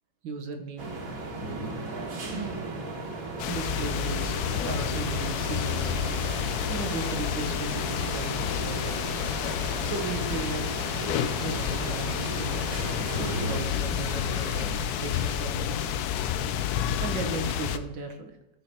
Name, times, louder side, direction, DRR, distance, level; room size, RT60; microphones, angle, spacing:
voice 1, 0.2-1.0 3.4-6.0 6.7-9.1 9.8-10.6 11.4-12.6 13.2-16.0 17.0-18.3, right 4 dB, 85° right, 5 dB, 1.8 m, -36 dB
sound 1, 0.8-13.6, right 2 dB, 50° right, 1.7 m, -36 dB
sound 2, 3.4-17.8, left 9 dB, 70° left, 1.0 m, -30 dB
sound 3, 5.4-16.0, equal, 10° left, 1.4 m, -46 dB
13.0 x 4.6 x 4.3 m, 0.96 s
omnidirectional pair, 2.0 m